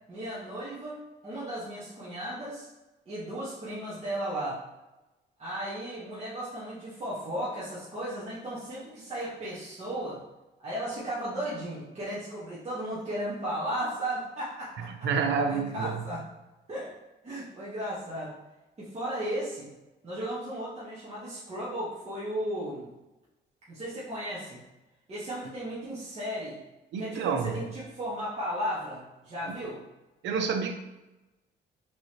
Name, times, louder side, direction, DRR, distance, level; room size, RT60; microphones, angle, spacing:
voice 1, 0.1-2.7 3.1-4.6 5.4-10.2 10.6-15.1 15.4-16.2 16.7-16.9 17.2-18.3 18.8-19.7 20.0-22.9 23.7-24.6 25.1-26.6 27.0-29.8, right 1 dB, 35° right, -9 dB, 1.5 m, -35 dB
voice 2, 14.9-16.0 26.9-27.6 29.5-29.6 30.2-30.7, right 5 dB, 85° right, 6 dB, 0.6 m, -29 dB
5.3 x 3.3 x 2.9 m, 1.0 s
cardioid pair, 105°, 19 cm